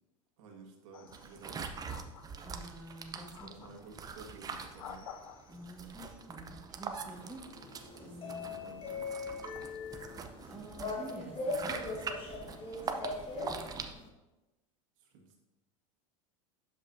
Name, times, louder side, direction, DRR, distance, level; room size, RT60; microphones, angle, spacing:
voice 1, 0.4-1.7 3.4-5.1 8.0-9.1 12.8-13.3 15.0-15.4, right 4 dB, 70° right, 1 dB, 1.7 m, -53 dB
sound 1, 0.9-1.5 1.9-2.7 3.3-4.0 4.6-5.7, left 8 dB, 90° left, 0.5 m, -50 dB
sound 2, 1.1-13.9, right 5 dB, 20° right, 0.6 m, -44 dB
voice 2, 2.4-3.5 5.5-7.5 7.9-8.6 10.5-12.0 13.3-13.9, right 1 dB, 5° right, -2 dB, 1.5 m, -48 dB
sound 3, 7.1-14.1, left 3 dB, 30° left, 1.1 m, -40 dB
11.5 x 5.5 x 2.7 m, 1.0 s
supercardioid pair, 115°, 17 cm